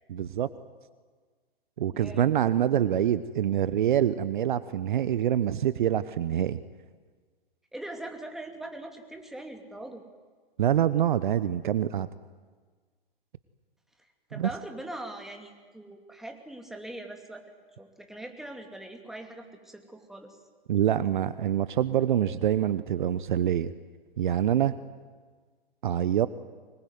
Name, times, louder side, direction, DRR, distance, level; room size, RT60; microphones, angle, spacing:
voice 1, 0.1-0.5 1.8-6.6 10.6-12.1 14.3-14.5 20.7-23.7 24.2-24.7 25.8-26.3, right 10 dB, 55° right, 15 dB, 1.1 m, -25 dB
voice 2, 1.9-2.4 7.7-10.0 14.3-17.4 17.8-20.4, right 1 dB, ahead, 4 dB, 2.8 m, -41 dB
24.5 x 21.0 x 9.6 m, 1.5 s
figure-of-eight pair, 120°, 30 cm